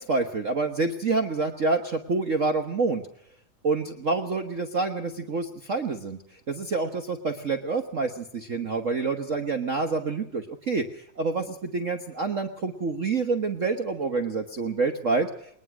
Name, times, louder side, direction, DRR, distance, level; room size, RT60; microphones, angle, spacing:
voice 1, 0.0-3.0 3.6-6.2 6.5-15.3, right 3 dB, 80° right, 6 dB, 0.7 m, -27 dB
21.5 x 20.0 x 6.1 m, 0.72 s
omnidirectional pair, 3.4 m